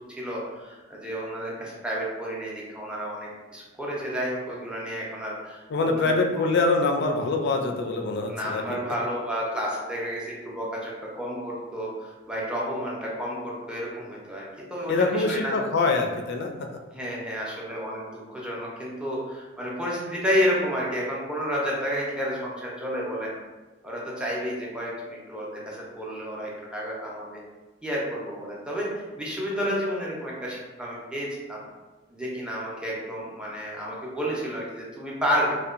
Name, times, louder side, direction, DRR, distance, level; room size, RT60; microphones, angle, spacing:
voice 1, 0.1-6.5 8.3-14.4 14.7-15.6 16.9-23.4 23.8-27.4 27.8-31.6 32.1-35.5, equal, 5° right, -5 dB, 0.5 m, -31 dB
voice 2, 5.7-8.8 14.9-16.7, left 3 dB, 60° left, 3 dB, 0.3 m, -24 dB
2.7 x 2.1 x 2.4 m, 1.2 s
head